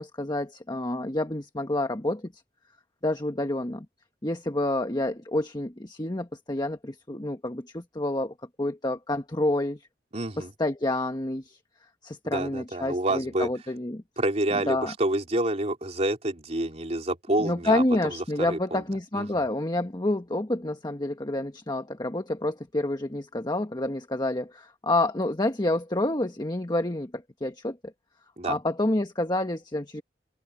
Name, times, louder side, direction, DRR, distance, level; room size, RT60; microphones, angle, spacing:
voice 1, 0.0-2.3 3.0-3.9 4.2-9.8 10.4-11.6 12.0-14.0 14.5-14.9 17.4-27.9 28.4-30.0, left 1 dB, 25° left, 1.4 m, -28 dB
voice 2, 10.1-10.5 12.2-13.5 14.2-18.8 19.1-19.4 28.4-28.6, right 1 dB, 40° right, 3.5 m, -28 dB
open air
head